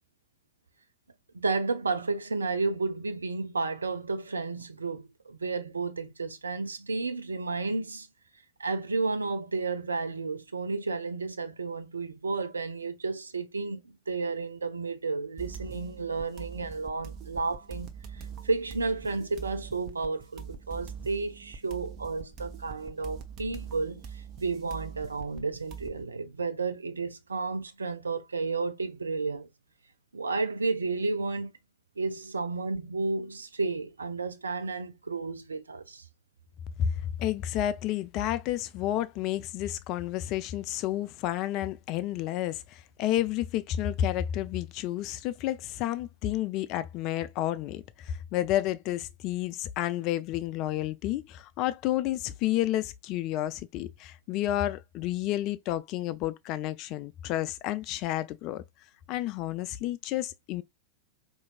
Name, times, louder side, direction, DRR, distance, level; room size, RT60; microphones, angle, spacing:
voice 1, 1.3-8.1 8.6-29.5 30.1-31.5 32.0-36.0, right 3 dB, 75° right, 0.5 m, -32 dB
sound 1, 15.4-26.0, right 6 dB, 35° right, 0.7 m, -43 dB
voice 2, 36.8-58.6 59.1-60.6, left 13 dB, 40° left, 0.3 m, -31 dB
4.4 x 2.6 x 2.3 m
figure-of-eight pair, 90°, 0 cm